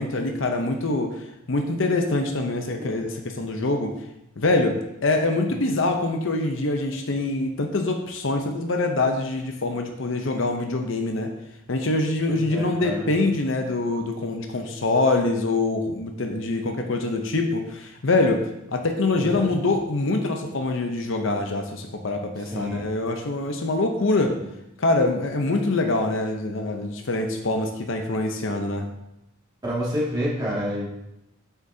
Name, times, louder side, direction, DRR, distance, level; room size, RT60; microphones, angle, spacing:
voice 1, 0.0-3.9 4.4-11.3 11.7-18.4 18.7-24.4 24.8-28.9, left 2 dB, 60° left, 4 dB, 0.7 m, -24 dB
voice 2, 12.3-13.1 19.1-19.5 22.4-22.9 24.3-24.4 29.6-30.9, equal, 20° right, -7 dB, 2.1 m, -29 dB
7.6 x 5.9 x 2.7 m, 0.86 s
head